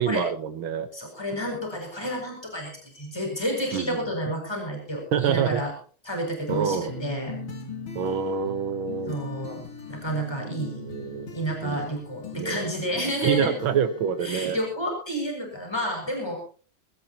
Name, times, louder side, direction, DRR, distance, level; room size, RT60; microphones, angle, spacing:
voice 1, 0.0-0.9 3.7-4.0 5.1-5.6 6.5-6.9 8.0-9.2 10.7-11.3 11.6-11.9 12.3-12.7 13.1-14.6, right 7 dB, 85° right, 9 dB, 2.0 m, -26 dB
voice 2, 0.9-5.7 6.0-7.3 9.1-9.6 9.9-10.8 11.3-13.5 14.2-16.4, equal, 10° left, 1 dB, 6.7 m, -30 dB
sound 1, 6.5-14.9, left 4 dB, 90° left, 3.5 m, -40 dB
21.0 x 19.0 x 2.9 m, 0.41 s
omnidirectional pair, 2.2 m